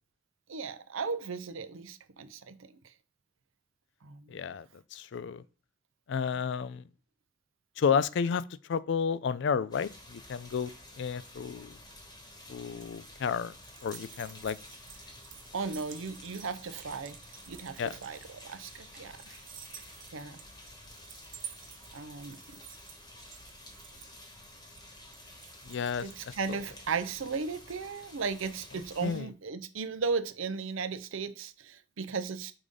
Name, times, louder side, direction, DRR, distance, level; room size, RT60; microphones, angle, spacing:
voice 1, 0.5-2.6 4.0-4.4 6.3-6.4 15.5-17.1 17.5-19.4 20.1-20.4 21.9-22.4 26.0-32.5, right 5 dB, 75° right, 0.6 m, -36 dB
voice 2, 4.3-4.7 4.9-5.4 6.1-6.8 7.8-10.7 11.0-11.7 12.5-13.5 13.8-14.6 17.8-17.9 25.7-26.6 29.0-29.3, left 6 dB, 60° left, 0.3 m, -31 dB
sound 1, 9.7-29.2, left 1 dB, 20° left, 1.2 m, -51 dB
sound 2, 12.9-26.7, right 9 dB, 40° right, 0.7 m, -51 dB
4.9 x 3.7 x 5.3 m
head